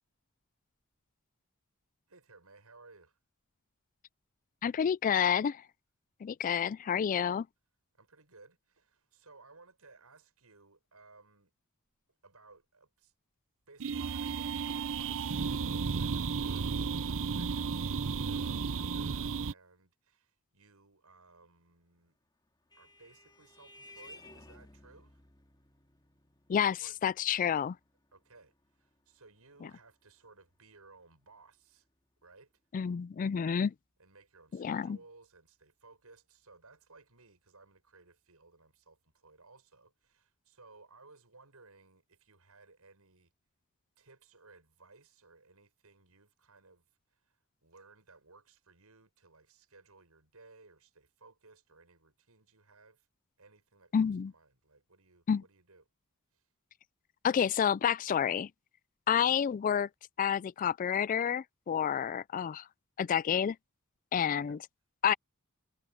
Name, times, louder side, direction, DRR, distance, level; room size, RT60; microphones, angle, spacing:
voice 1, 2.1-3.2 6.4-6.8 7.9-11.5 12.2-13.1 13.7-22.2 22.7-25.2 26.8-27.0 28.1-31.9 32.2-32.5 34.0-43.3 44.0-53.1 53.4-55.9 56.3-56.5 64.5-64.6, right 3 dB, 85° right, 6.4 m, -60 dB
voice 2, 4.6-5.6 6.2-7.5 26.5-27.8 32.7-33.7 34.5-35.0 53.9-54.3 55.3-55.4 57.2-58.5 59.1-59.9 60.2-62.6 63.0-63.6 64.1-64.6 65.0-65.1, left 8 dB, 35° left, 0.3 m, -29 dB
sound 1, 13.8-19.5, right 5 dB, 65° right, 0.7 m, -33 dB
Vehicle horn car horn honking, 22.1-31.1, left 1 dB, 20° left, 2.3 m, -58 dB
head